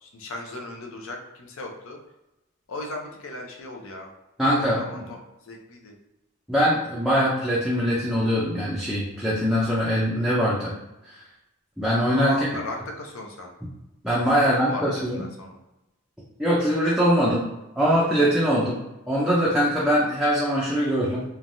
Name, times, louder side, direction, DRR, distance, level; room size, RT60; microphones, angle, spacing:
voice 1, 0.0-2.0 2.7-4.1 4.6-6.0 12.1-13.5 14.2-15.6, left 2 dB, 65° left, 1 dB, 0.6 m, -37 dB
voice 2, 4.4-5.1 6.5-10.7 11.0-11.2 11.8-12.6 14.0-15.3 16.4-17.4 17.8-18.8 19.1-21.2, equal, ahead, -7 dB, 0.4 m, -22 dB
3.2 x 2.2 x 2.6 m, 0.95 s
head